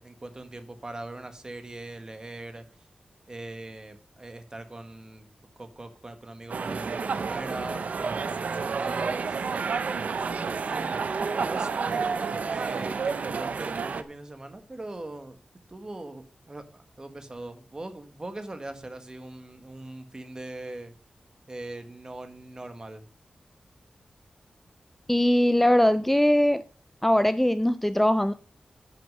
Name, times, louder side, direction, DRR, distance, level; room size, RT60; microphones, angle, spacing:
voice 1, 0.0-2.7 3.3-5.3 5.6-9.5 10.1-11.0 11.4-15.4 15.7-20.9 21.5-23.0, right 2 dB, 30° right, 1.5 m, -41 dB
sound 1, 6.5-14.0, right 5 dB, 75° right, 0.7 m, -30 dB
voice 2, 25.1-26.6 27.0-28.3, left 1 dB, 5° left, 0.4 m, -21 dB
10.0 x 6.5 x 5.4 m
wide cardioid pair, 105°, 3 cm